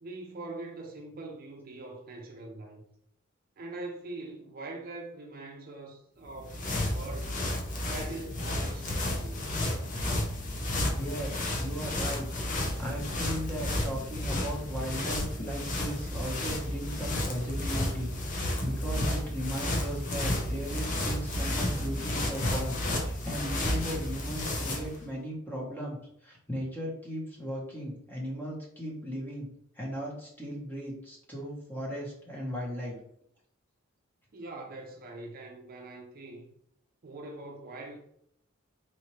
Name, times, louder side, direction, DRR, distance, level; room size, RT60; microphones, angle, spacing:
voice 1, 0.0-2.8 3.6-7.4 7.9-9.5 34.3-36.4 37.0-38.0, right 2 dB, 45° right, 0.5 m, -43 dB
sound 1, 6.2-25.0, left 1 dB, 40° left, 0.7 m, -32 dB
voice 2, 11.0-12.3 12.5-26.0 26.2-29.5 29.7-33.0, equal, 10° left, 1.0 m, -37 dB
4.1 x 2.6 x 3.0 m
head